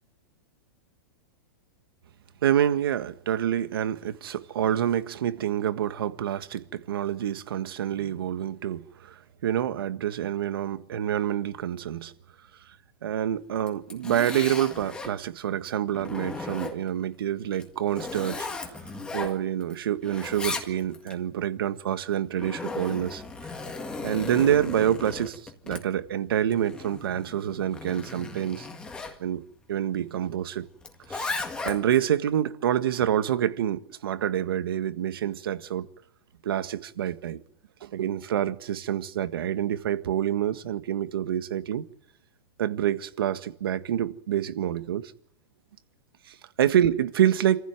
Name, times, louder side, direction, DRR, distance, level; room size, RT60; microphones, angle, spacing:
voice 1, 2.4-12.1 13.0-18.5 19.1-23.5 24.0-28.7 29.2-29.4 29.7-30.7 31.1-35.9 36.4-37.4 37.8-41.9 42.6-45.1 46.3-47.6, right 10 dB, 75° right, 1.7 m, -27 dB
Zipper (clothing), 13.6-15.2 15.7-17.0 17.5-19.7 20.0-21.1 22.0-29.2 30.8-32.0, left 3 dB, 10° left, 1.9 m, -36 dB
26.5 x 15.0 x 9.3 m
supercardioid pair, 170°, 12 cm